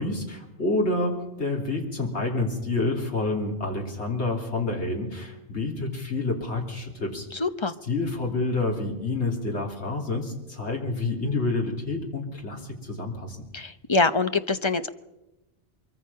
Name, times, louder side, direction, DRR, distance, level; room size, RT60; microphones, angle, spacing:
voice 1, 0.0-7.3 7.9-13.4, left 2 dB, 80° left, 0 dB, 3.6 m, -28 dB
voice 2, 7.4-7.7 13.5-14.9, left 3 dB, 30° left, 10 dB, 0.8 m, -24 dB
23.5 x 23.5 x 5.6 m, 0.98 s
omnidirectional pair, 1.1 m